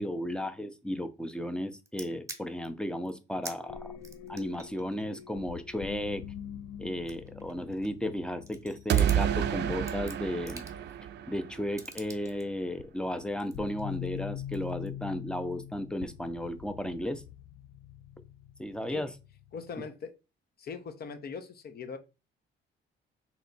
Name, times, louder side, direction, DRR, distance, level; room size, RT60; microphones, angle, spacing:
voice 1, 0.0-3.9 4.3-6.2 6.8-10.6 11.3-17.2 18.6-19.1, equal, 5° left, 0.5 m, -34 dB
sound 1, 1.9-2.7 3.0-3.1 3.4-3.6 4.0-6.4 6.9-8.1 8.4-9.2 9.7-11.0 11.8-12.4 13.2-14.2 14.5-14.9, right 2 dB, 15° right, 0.9 m, -46 dB
sound 2, 3.6-10.5 12.2-12.3 12.8-19.9, left 10 dB, 80° left, 0.4 m, -44 dB
sound 3, 8.9-11.8, right 10 dB, 60° right, 0.4 m, -29 dB
voice 2, 19.5-20.1 20.6-22.0, left 5 dB, 50° left, 0.7 m, -40 dB
3.3 x 3.0 x 4.0 m
cardioid pair, 90°, 20 cm